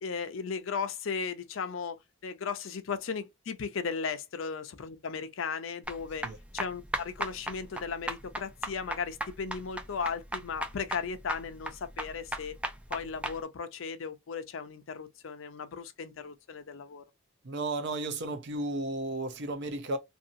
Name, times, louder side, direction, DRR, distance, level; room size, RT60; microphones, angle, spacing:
voice 1, 0.0-6.3 6.5-12.6 12.9-17.0, left 5 dB, 70° left, 0.5 m, -36 dB
sound 1, 5.8-13.4, right 1 dB, 5° right, 0.4 m, -37 dB
voice 2, 17.4-20.0, right 2 dB, 60° right, 0.6 m, -33 dB
2.7 x 2.7 x 2.6 m
head